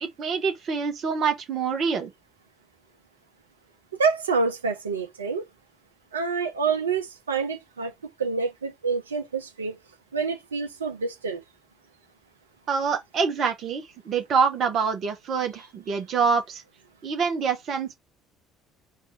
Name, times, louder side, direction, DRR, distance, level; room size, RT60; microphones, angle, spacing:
voice 1, 0.0-2.1 12.7-16.6 17.0-17.9, right 5 dB, 50° right, 1.3 m, -26 dB
voice 2, 4.0-5.5 6.1-7.9 8.2-9.8 10.1-11.4, right 4 dB, 80° right, 0.7 m, -27 dB
4.3 x 2.7 x 3.3 m
figure-of-eight pair, 55°, 0 cm